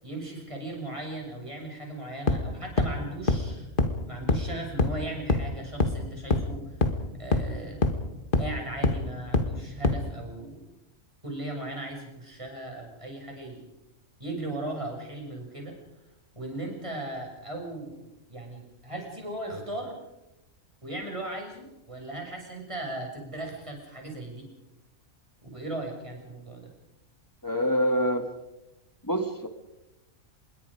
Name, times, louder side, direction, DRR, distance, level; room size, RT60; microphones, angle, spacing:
voice 1, 0.0-3.7 4.1-6.8 7.1-7.9 8.4-10.6 11.2-13.6 14.2-15.7 16.3-18.0 18.3-19.9 20.8-24.5 25.4-26.7, right 1 dB, 20° right, 0 dB, 6.7 m, -37 dB
sound 1, 2.3-2.4 2.8-2.9 3.3-3.4 3.8-3.9 4.3-4.4 4.8-4.9 5.3-5.4 5.8-5.9 6.3-6.4 6.8-6.9 7.3-7.4 7.8-7.9 8.3-8.4 8.8-8.9 9.3-9.4 9.8-9.9, left 3 dB, 40° left, 1.8 m, -22 dB
voice 2, 27.4-28.3 29.0-29.5, equal, 15° left, 6 dB, 2.2 m, -25 dB
26.5 x 22.0 x 5.1 m, 0.94 s
omnidirectional pair, 1.5 m